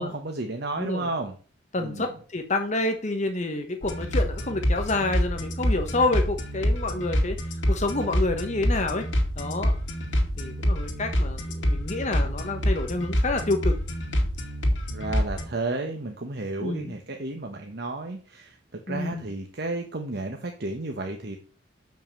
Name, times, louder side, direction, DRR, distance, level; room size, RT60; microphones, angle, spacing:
voice 1, 0.0-1.3 1.8-2.1 14.9-21.4, right 2 dB, 60° right, 4 dB, 1.1 m, -32 dB
voice 2, 0.7-1.1 1.7-7.4 7.7-9.1 9.4-9.7 10.4-13.8 16.6-16.9 18.9-19.2, left 2 dB, 40° left, 6 dB, 1.1 m, -28 dB
sound 1, 3.8-15.4, equal, 80° left, 2.2 m, -26 dB
7.1 x 5.8 x 7.3 m, 0.40 s
head